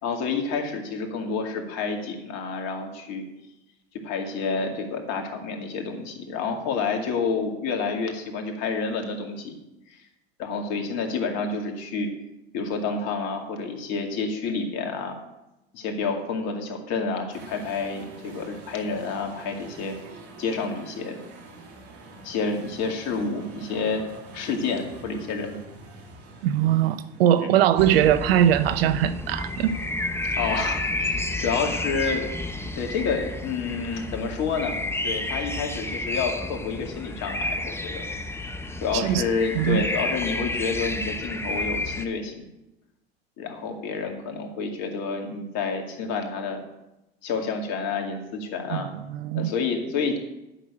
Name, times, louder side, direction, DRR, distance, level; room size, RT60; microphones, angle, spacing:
voice 1, 0.0-3.2 4.0-9.6 9.9-10.0 10.4-12.1 12.5-15.2 15.7-20.0 20.4-21.2 22.2-24.0 24.3-25.6 27.4-27.5 30.2-32.3 32.7-34.8 35.0-38.0 38.8-42.5 43.4-46.6 47.2-48.9 49.3-50.2, left 4 dB, 60° left, 2.3 m, -29 dB
sound 1, 17.3-36.4, right 3 dB, 50° right, 2.6 m, -48 dB
voice 2, 26.4-29.7 38.9-39.2 39.6-39.9 48.7-49.5, right 11 dB, 75° right, 0.8 m, -21 dB
sound 2, 27.8-42.0, left 2 dB, 10° left, 1.0 m, -31 dB
8.9 x 6.5 x 8.4 m
hypercardioid pair, 75°, 30 cm